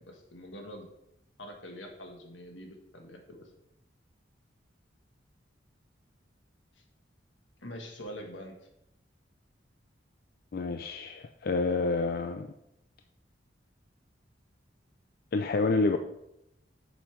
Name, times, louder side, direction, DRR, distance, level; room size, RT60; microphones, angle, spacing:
voice 1, 0.1-0.9 1.4-3.5 7.6-8.5, equal, 85° left, 2 dB, 1.5 m, -44 dB
voice 2, 10.5-12.5 15.3-16.0, left 3 dB, 50° left, 6 dB, 0.4 m, -28 dB
7.0 x 5.5 x 4.5 m, 0.83 s
head